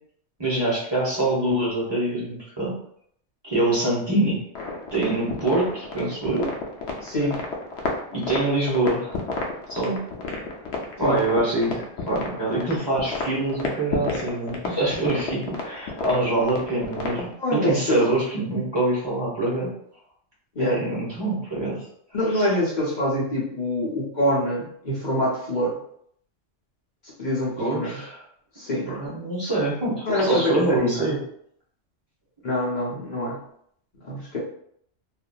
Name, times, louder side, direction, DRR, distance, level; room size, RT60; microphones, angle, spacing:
voice 1, 0.4-2.8 3.4-4.4 4.9-6.5 8.1-9.2 9.7-10.0 11.0-19.7 20.6-21.9 22.3-22.5 27.6-28.2 28.9-31.2, right 2 dB, 25° right, -7 dB, 0.7 m, -25 dB
sound 1, 4.5-17.3, left 3 dB, 70° left, 0.9 m, -31 dB
voice 2, 7.0-7.4 11.0-11.2 17.4-18.0 20.5-20.8 22.1-25.8 27.2-28.0 28.6-28.9 30.1-31.1 32.4-33.4 34.0-34.4, left 1 dB, 45° left, -5 dB, 0.8 m, -25 dB
2.7 x 2.4 x 2.2 m, 0.67 s
omnidirectional pair, 1.2 m